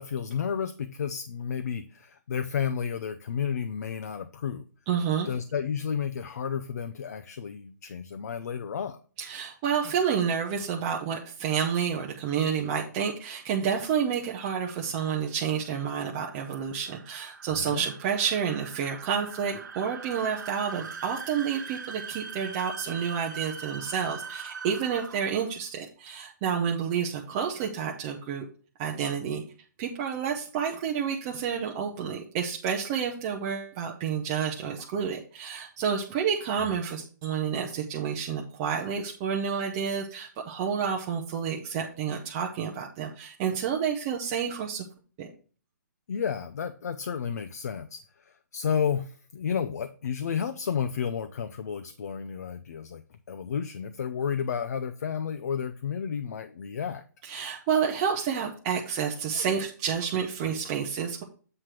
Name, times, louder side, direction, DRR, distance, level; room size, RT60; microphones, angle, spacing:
voice 1, 0.0-4.7 5.3-9.0 17.5-17.8 36.6-36.7 46.1-53.0 53.3-57.0, left 7 dB, 60° left, 8 dB, 0.5 m, -32 dB
voice 2, 4.9-5.3 9.2-28.4 28.8-29.4 29.8-44.8 45.2-45.3 57.2-61.2, right 7 dB, 20° right, 0 dB, 0.5 m, -29 dB
sound 1, 15.2-25.5, right 5 dB, 85° right, 1.0 m, -42 dB
7.7 x 3.3 x 5.8 m, 0.41 s
hypercardioid pair, 170°, 10 cm